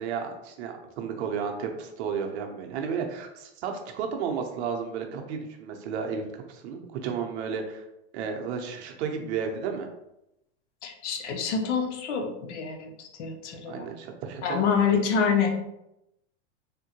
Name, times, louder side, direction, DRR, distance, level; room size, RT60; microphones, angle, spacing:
voice 1, 0.0-7.9 8.1-9.9 13.7-14.6, right 6 dB, 70° right, 3 dB, 0.7 m, -33 dB
voice 2, 10.8-13.9 14.4-15.6, left 6 dB, 75° left, 4 dB, 0.7 m, -27 dB
3.6 x 2.1 x 2.8 m, 0.87 s
supercardioid pair, 120°, 35 cm